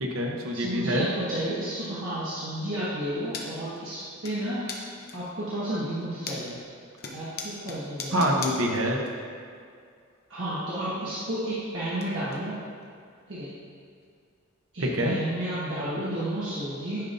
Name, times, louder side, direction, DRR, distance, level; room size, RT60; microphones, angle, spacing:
voice 1, 0.0-1.1 8.1-9.0 14.8-15.1, equal, 85° right, 0 dB, 0.9 m, -26 dB
voice 2, 0.5-4.6 5.1-6.6 7.1-8.3 10.3-12.5 13.3-13.5 14.7-17.0, right 1 dB, 65° right, -11 dB, 1.4 m, -31 dB
sound 1, 3.3-3.5 3.8-4.3 4.7-5.3 5.8-6.6 7.0-9.1 9.4-9.5 10.7-10.8 11.1-12.0 12.3-12.4 12.8-12.9 13.4-13.5 14.0-14.1 15.3-15.4, left 4 dB, 50° left, 0.8 m, -38 dB
10.5 x 5.2 x 2.6 m, 2.3 s
head